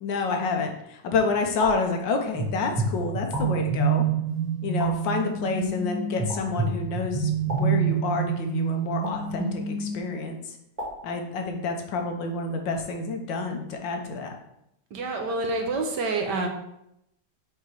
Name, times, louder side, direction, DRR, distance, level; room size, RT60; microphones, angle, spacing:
voice 1, 0.0-4.0 4.6-10.4 11.0-14.4, left 4 dB, 70° left, 4 dB, 1.5 m, -28 dB
sound 1, 1.6-2.0 3.3-3.7 4.8-5.1 6.3-6.6 7.5-7.9 9.0-9.4 10.8-11.2, equal, 20° right, 1.8 m, -36 dB
sound 2, 2.3-10.0, right 5 dB, 80° right, 2.1 m, -27 dB
voice 2, 14.9-16.5, right 3 dB, 65° right, 3 dB, 1.3 m, -27 dB
5.5 x 4.4 x 4.7 m, 0.80 s
omnidirectional pair, 2.2 m